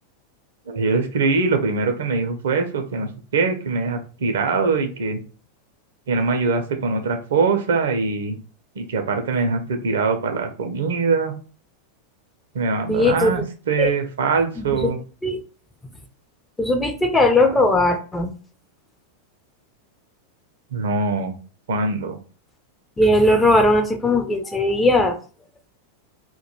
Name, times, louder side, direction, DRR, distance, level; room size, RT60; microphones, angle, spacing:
voice 1, 0.7-5.2 6.1-8.4 8.8-11.3 12.5-15.0 20.7-21.3 21.7-22.2, right 4 dB, 60° right, 6 dB, 0.5 m, -22 dB
voice 2, 12.9-13.4 13.8-13.9 14.7-14.9 15.2-15.4 16.6-18.3 23.0-25.2, left 1 dB, 10° left, 5 dB, 0.4 m, -18 dB
2.2 x 2.2 x 2.9 m, 0.37 s
figure-of-eight pair, 90°, 0 cm